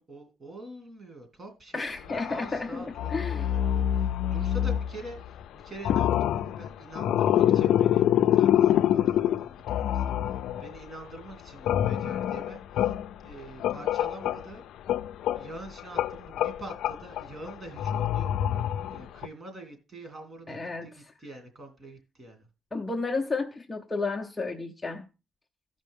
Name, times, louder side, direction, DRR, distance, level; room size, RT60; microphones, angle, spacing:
voice 1, 0.0-10.1 10.6-14.6 15.3-18.3 18.9-22.5, right 1 dB, 30° right, 2.6 m, -45 dB
voice 2, 1.7-2.8 3.1-3.5 20.5-21.1 22.7-25.1, left 3 dB, 15° left, 0.6 m, -32 dB
sound 1, 2.0-2.6 2.9-5.5 5.8-10.9 11.2-14.5 14.9-19.3, left 11 dB, 80° left, 0.4 m, -26 dB
14.5 x 5.3 x 3.6 m
cardioid pair, 130°, 0 cm